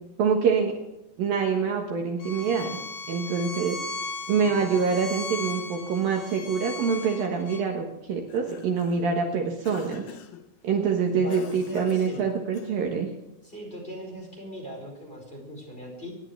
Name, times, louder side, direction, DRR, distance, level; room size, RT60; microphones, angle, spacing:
voice 1, 0.2-0.7 1.2-2.7 3.1-3.8 4.3-10.0 10.6-13.1, right 6 dB, 65° right, 2 dB, 2.9 m, -25 dB
Bowed string instrument, 2.2-7.6, left 3 dB, 90° left, 3.4 m, -37 dB
Cough, 8.1-9.1 9.6-10.5 11.3-13.0, left 8 dB, 70° left, 2.8 m, -45 dB
voice 2, 11.1-12.2 13.4-16.1, equal, 15° left, -1 dB, 4.7 m, -39 dB
25.5 x 11.5 x 3.3 m, 0.92 s
omnidirectional pair, 4.8 m